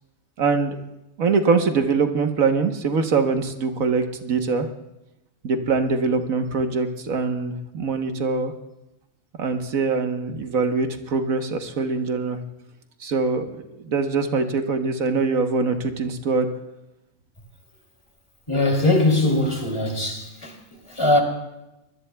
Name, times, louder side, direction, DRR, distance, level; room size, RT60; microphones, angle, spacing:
voice 1, 0.4-0.8 1.2-4.7 5.4-8.5 9.4-12.4 13.0-16.5, right 4 dB, 90° right, 5 dB, 1.6 m, -23 dB
voice 2, 18.5-20.6 20.9-21.2, left 2 dB, 20° left, 1 dB, 2.8 m, -21 dB
24.5 x 20.5 x 2.3 m, 0.92 s
omnidirectional pair, 1.4 m